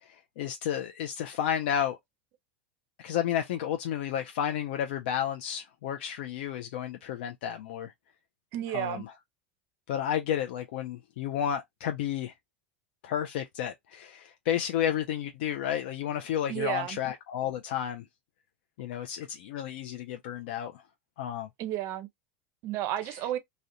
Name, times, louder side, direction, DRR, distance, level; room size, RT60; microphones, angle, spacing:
voice 1, 0.0-2.0 3.0-7.9 8.7-9.1 9.9-12.3 13.0-18.0 18.8-20.8 21.2-21.5, left 10 dB, 75° left, 0.3 m, -32 dB
voice 2, 8.5-9.0 16.5-17.0 21.6-22.1 22.6-23.4, right 13 dB, 50° right, 0.4 m, -32 dB
2.4 x 2.0 x 2.7 m
hypercardioid pair, 100°, 6 cm